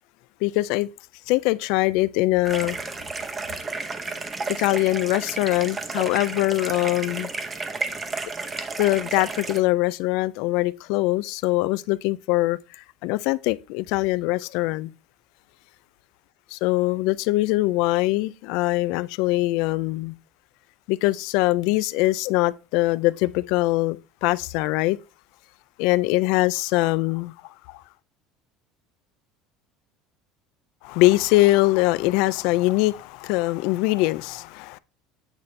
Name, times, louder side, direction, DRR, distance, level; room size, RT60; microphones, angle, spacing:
voice 1, 0.4-0.9 1.3-2.8 4.6-7.3 8.8-12.6 13.0-14.9 16.5-20.1 20.9-25.0 25.8-27.3 27.7-27.8 30.8-34.8, left 19 dB, 70° left, 0.3 m, -22 dB
sound 1, 2.4-9.6, right 3 dB, 20° right, 0.7 m, -32 dB
8.2 x 4.1 x 3.2 m
cardioid pair, 140°, 0 cm